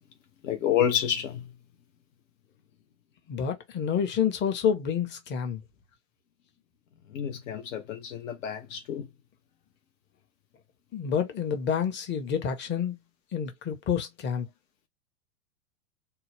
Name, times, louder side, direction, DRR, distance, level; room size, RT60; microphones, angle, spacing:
voice 1, 0.4-1.4 7.1-9.1, left 9 dB, 65° left, 0.8 m, -29 dB
voice 2, 3.3-5.6 10.9-12.9 13.3-14.4, left 7 dB, 25° left, 0.8 m, -28 dB
2.7 x 2.1 x 3.1 m
hypercardioid pair, 95°, 41 cm